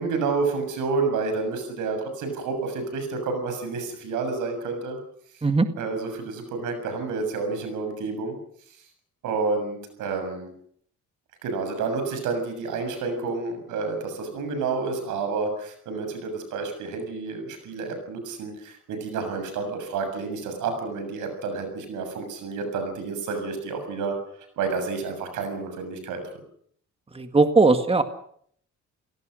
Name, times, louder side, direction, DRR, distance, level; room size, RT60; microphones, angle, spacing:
voice 1, 0.0-5.0 5.8-8.4 9.2-10.5 11.4-24.2 24.6-26.2, right 4 dB, 90° right, 7 dB, 6.9 m, -29 dB
voice 2, 27.1-28.0, right 3 dB, 20° right, 8 dB, 1.9 m, -19 dB
30.0 x 18.0 x 6.5 m, 0.63 s
cardioid pair, 90°, 30 cm